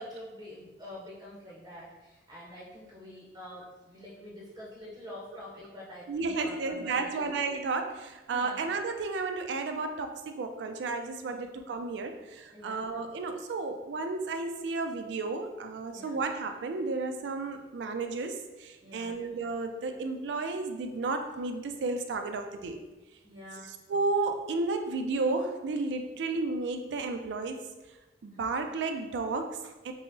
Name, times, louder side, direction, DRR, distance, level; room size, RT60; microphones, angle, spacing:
voice 1, 0.0-7.3 8.3-8.6 11.3-11.4 12.5-12.8 15.9-16.2 18.8-19.2 23.2-23.7 28.3-28.4, left 1 dB, 20° right, -6 dB, 0.6 m, -46 dB
voice 2, 6.1-22.8 23.9-27.7 28.2-29.9, right 3 dB, 85° right, 6 dB, 0.3 m, -32 dB
5.4 x 2.0 x 2.6 m, 1.1 s
head